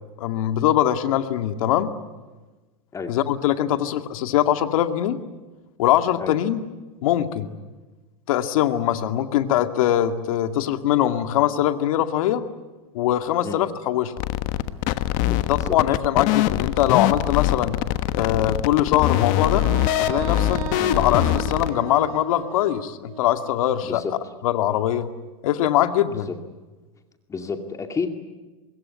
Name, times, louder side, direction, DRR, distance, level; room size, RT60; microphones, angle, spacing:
voice 1, 0.2-1.9 3.1-5.2 5.8-6.6 7.0-7.5 8.3-12.4 12.9-14.1 15.5-17.8 18.1-19.6 20.0-20.6 21.0-24.0 24.4-25.1 25.4-26.3, left 12 dB, 65° left, 8 dB, 2.2 m, -22 dB
sound 1, 14.2-21.7, left 14 dB, 45° left, 1.3 m, -23 dB
Wind instrument woodwind instrument, 19.4-23.4, right 10 dB, 70° right, 4.0 m, -35 dB
voice 2, 27.3-28.1, left 5 dB, 15° left, 6 dB, 2.3 m, -30 dB
25.5 x 21.5 x 9.7 m, 1.2 s
supercardioid pair, 135°, 19 cm